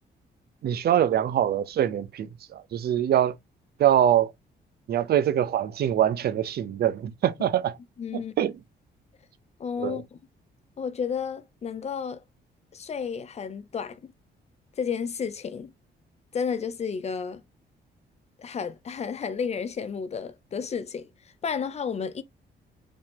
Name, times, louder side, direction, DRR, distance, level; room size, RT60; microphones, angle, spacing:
voice 1, 0.6-3.3 3.8-4.3 4.9-7.8 8.1-8.5 9.8-10.0, right 10 dB, 60° right, 0.6 m, -24 dB
voice 2, 8.0-8.3 9.6-10.1 10.8-12.2 12.7-14.1 14.8-15.7 16.3-17.4 18.4-21.1 21.4-22.2, left 6 dB, 35° left, 0.5 m, -32 dB
5.2 x 2.8 x 3.5 m
cardioid pair, 140°, 18 cm